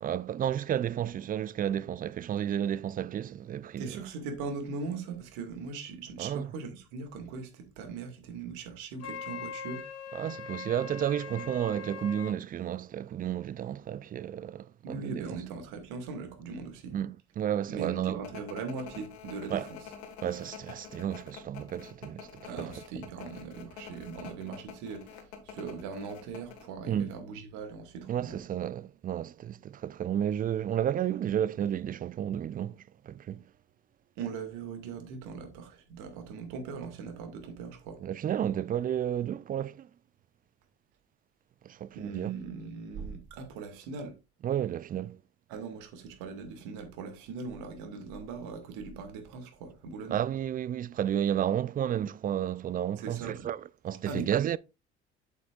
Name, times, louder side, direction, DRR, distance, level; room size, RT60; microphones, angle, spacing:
voice 1, 0.0-4.0 6.2-6.5 10.1-15.3 16.9-18.2 19.5-19.7 20.2-22.7 26.9-27.1 28.1-33.4 38.0-39.9 41.6-42.3 44.4-45.2 50.1-54.6, right 10 dB, 30° right, 0.4 m, -32 dB
voice 2, 3.8-9.8 14.8-17.0 17.7-19.8 22.5-28.4 34.2-38.0 41.9-44.1 45.5-50.2 53.0-53.4 54.1-54.3, right 5 dB, 65° right, 2.1 m, -40 dB
Wind instrument woodwind instrument, 9.0-12.4, left 6 dB, 50° left, 1.3 m, -41 dB
sound 1, 18.2-26.7, left 7 dB, 75° left, 1.7 m, -46 dB
8.1 x 7.5 x 2.4 m
hypercardioid pair, 60°, 32 cm